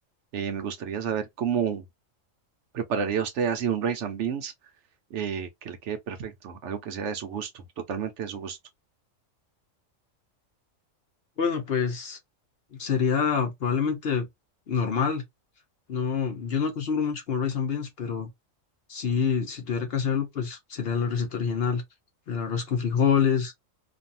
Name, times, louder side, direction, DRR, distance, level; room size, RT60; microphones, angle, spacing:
voice 1, 0.3-1.9 2.7-4.5 5.1-8.6, right 7 dB, 70° right, 0.9 m, -30 dB
voice 2, 11.4-12.2 12.7-14.3 14.7-15.2 15.9-18.3 18.9-21.8 22.3-23.5, left 6 dB, 60° left, 0.8 m, -26 dB
2.6 x 2.3 x 2.6 m
omnidirectional pair, 1.3 m